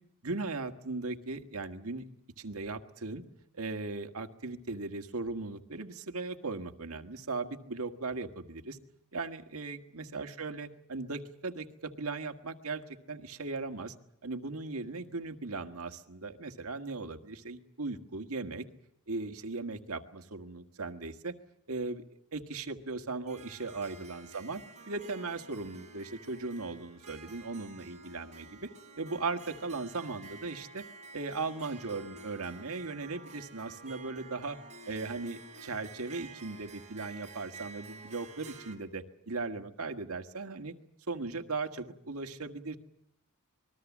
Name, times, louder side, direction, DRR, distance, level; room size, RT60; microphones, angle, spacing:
voice 1, 0.2-2.0 2.4-3.2 3.6-8.8 9.1-13.9 14.2-18.7 19.1-21.3 21.7-22.0 22.3-24.6 24.9-28.7 29.0-30.8 31.1-34.6 34.9-40.7 41.1-42.8, right 3 dB, 85° right, 7 dB, 1.7 m, -38 dB
Harp, 23.3-38.8, right 3 dB, 35° right, 4.1 m, -50 dB
26.5 x 21.0 x 7.3 m, 0.80 s
head